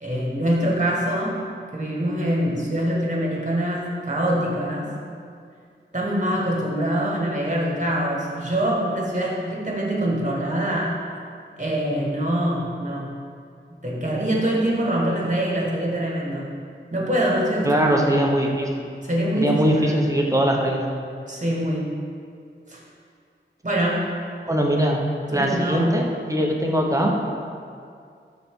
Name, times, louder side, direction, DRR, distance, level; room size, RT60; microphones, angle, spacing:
voice 1, 0.0-1.4 1.7-4.9 5.9-11.0 11.6-13.1 13.8-16.6 16.9-18.1 19.1-20.0 21.3-22.0 22.7-22.8 23.6-24.1 25.3-25.9, right 1 dB, 40° right, -3 dB, 1.7 m, -24 dB
voice 2, 17.6-18.9 19.4-20.9 24.5-25.0 25.3-27.1, equal, 15° right, -1 dB, 1.0 m, -21 dB
12.5 x 4.1 x 3.8 m, 2.2 s
wide cardioid pair, 60°, 20 cm